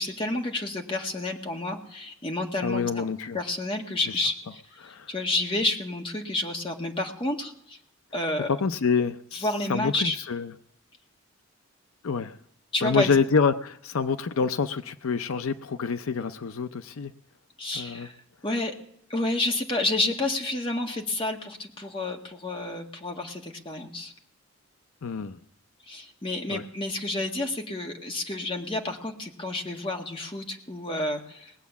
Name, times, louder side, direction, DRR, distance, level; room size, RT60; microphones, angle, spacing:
voice 1, 0.0-3.1 3.3-4.6 5.1-7.8 8.1-8.5 9.3-10.1 12.7-13.1 17.6-18.1 18.4-18.7 19.1-24.1 25.9-31.5, left 2 dB, 25° left, 2 dB, 1.7 m, -30 dB
voice 2, 2.6-3.4 4.1-4.2 4.8-5.1 8.5-10.5 12.0-12.4 12.8-17.1 17.8-18.1 25.0-25.4 26.5-26.6, left 5 dB, 80° left, 11 dB, 0.5 m, -27 dB
20.0 x 8.2 x 7.0 m, 0.73 s
head